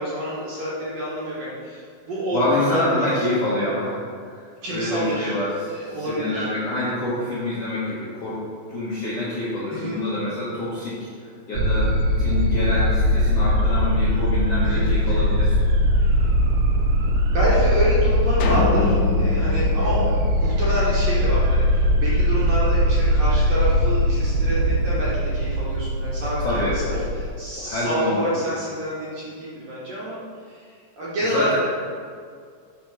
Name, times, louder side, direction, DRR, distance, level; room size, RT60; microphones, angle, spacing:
voice 1, 0.0-3.2 4.6-5.3 5.7-6.4 9.7-10.0 14.6-15.2 16.0-16.4 17.3-20.1 20.4-26.8 27.4-30.2 30.5-31.6, right 1 dB, 60° right, -8 dB, 1.8 m, -28 dB
voice 2, 2.3-11.9 12.2-15.7 19.8-20.1 26.4-27.1 27.6-28.4 31.2-31.6, left 1 dB, 65° left, -10 dB, 1.5 m, -27 dB
sound 1, 11.5-27.3, equal, 85° right, 2.4 m, -20 dB
sound 2, 18.4-20.9, left 4 dB, 90° left, 1.7 m, -27 dB
6.3 x 3.3 x 5.9 m, 2.1 s
omnidirectional pair, 4.1 m